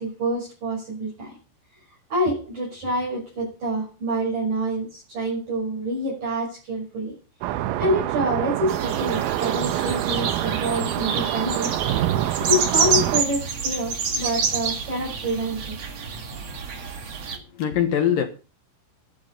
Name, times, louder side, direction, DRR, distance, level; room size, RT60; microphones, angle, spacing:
voice 1, 0.0-1.4 2.1-7.2 7.8-11.7 12.3-15.8, right 1 dB, 40° right, 7.2 m, -27 dB
sound 1, 7.4-13.2, right 13 dB, 85° right, 3.5 m, -26 dB
sound 2, 8.7-17.4, right 6 dB, 60° right, 1.7 m, -28 dB
voice 2, 17.3-18.2, left 9 dB, 75° left, 2.0 m, -23 dB
12.5 x 12.0 x 5.4 m
omnidirectional pair, 5.9 m